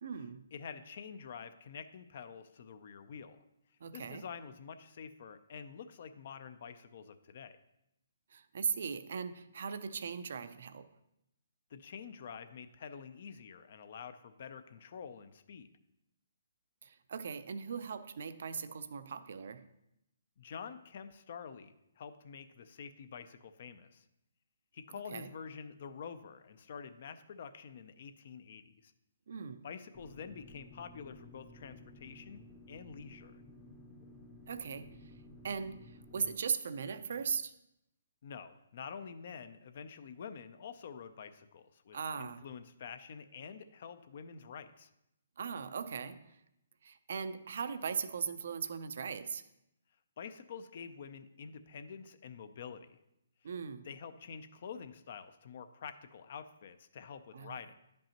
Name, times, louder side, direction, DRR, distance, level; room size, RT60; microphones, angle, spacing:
voice 1, 0.0-0.5 3.8-4.3 8.3-10.9 16.8-19.7 25.0-25.3 29.3-29.7 34.5-37.5 41.9-42.4 45.4-46.4 46.8-49.4 53.4-53.9 57.3-57.6, right 6 dB, 60° right, 0.4 m, -39 dB
voice 2, 0.5-3.4 3.9-7.6 11.7-15.7 20.4-24.0 24.7-28.9 29.6-32.4 32.7-33.4 38.2-44.9 50.2-53.0 53.9-57.7, left 6 dB, 55° left, 0.5 m, -47 dB
sound 1, 29.9-36.3, left 1 dB, 15° left, 0.7 m, -55 dB
10.0 x 5.3 x 2.9 m
hypercardioid pair, 150°, 0 cm